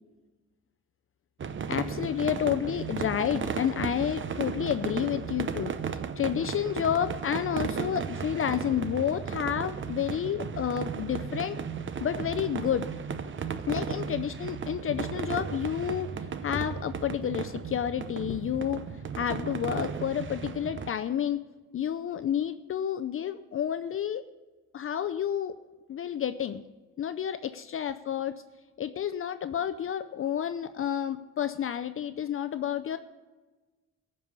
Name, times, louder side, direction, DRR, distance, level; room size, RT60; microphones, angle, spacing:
sound 1, 1.4-20.9, right 6 dB, 40° right, 0.7 m, -35 dB
voice 1, 1.7-5.7 6.2-11.6 12.0-12.9 13.7-16.1 16.4-18.8 19.1-21.4 21.7-24.2 24.7-25.6 25.9-26.6 27.0-28.4 28.8-33.0, left 9 dB, 45° left, 11 dB, 0.5 m, -30 dB
14.0 x 5.5 x 8.1 m, 1.2 s
cardioid pair, 90°, 30 cm